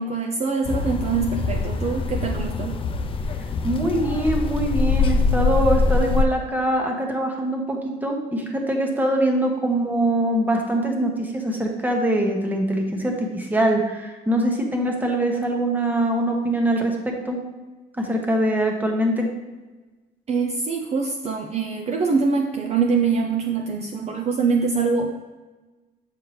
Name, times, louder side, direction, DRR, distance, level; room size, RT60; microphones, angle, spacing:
voice 1, 0.0-2.8 20.3-25.2, right 5 dB, 40° right, 3 dB, 0.5 m, -24 dB
sound 1, 0.7-6.3, left 4 dB, 30° left, 0.5 m, -23 dB
voice 2, 3.6-17.4 18.0-19.3, right 1 dB, 10° right, 2 dB, 1.1 m, -23 dB
7.7 x 4.5 x 3.2 m, 1.2 s
cardioid pair, 110°, 17 cm